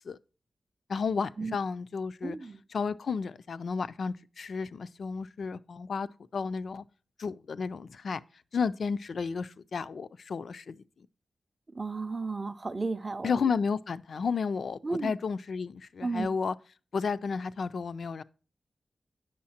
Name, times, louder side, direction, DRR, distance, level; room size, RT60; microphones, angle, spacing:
voice 1, 0.9-2.4 2.7-6.8 7.2-8.2 8.5-10.8 13.2-16.5 16.9-18.2, left 5 dB, 65° left, 0.3 m, -32 dB
voice 2, 2.2-2.6 11.7-13.3 14.8-15.1 16.0-16.3, right 3 dB, 25° right, 0.4 m, -33 dB
8.5 x 6.4 x 2.7 m
wide cardioid pair, 180°, 0 cm